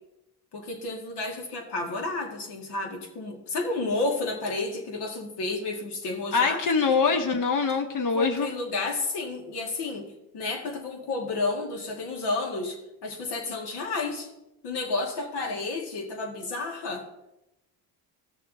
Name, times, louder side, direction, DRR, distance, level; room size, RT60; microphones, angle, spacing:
voice 1, 0.5-7.0 8.1-14.3 14.6-17.0, left 3 dB, 75° left, 2 dB, 2.0 m, -31 dB
voice 2, 6.3-8.5, left 5 dB, 50° left, 6 dB, 1.1 m, -24 dB
15.0 x 6.6 x 2.7 m, 0.91 s
cardioid pair, 90°, 41 cm